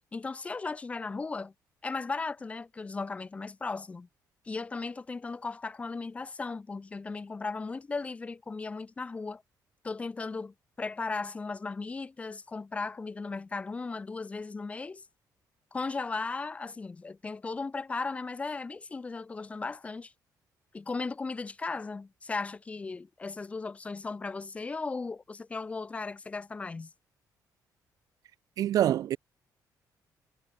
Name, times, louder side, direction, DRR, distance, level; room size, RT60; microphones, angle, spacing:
voice 1, 0.1-1.5 1.8-4.1 4.4-9.4 9.8-15.0 15.7-20.1 20.7-26.9, left 4 dB, 20° left, 6.7 m, -36 dB
voice 2, 28.6-29.2, right 12 dB, 60° right, 0.9 m, -25 dB
cardioid pair, 175°, 7 cm